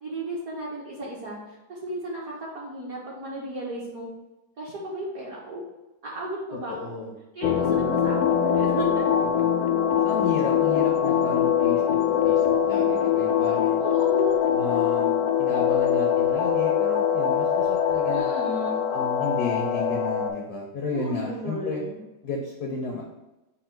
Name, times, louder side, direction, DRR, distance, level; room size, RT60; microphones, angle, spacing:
voice 1, 0.0-4.1 4.6-5.6 6.0-7.0 7.3-9.0 13.8-14.7 18.1-18.8 20.9-22.0, right 1 dB, 60° right, -4 dB, 1.0 m, -34 dB
voice 2, 6.7-7.1 9.4-9.5 10.0-12.0 12.2-13.8 14.5-18.3 18.9-21.8 22.2-23.0, left 3 dB, 75° left, -1 dB, 0.9 m, -32 dB
sound 1, 7.4-20.3, left 9 dB, 90° left, 1.5 m, -23 dB
5.4 x 2.3 x 4.3 m, 1.0 s
omnidirectional pair, 2.3 m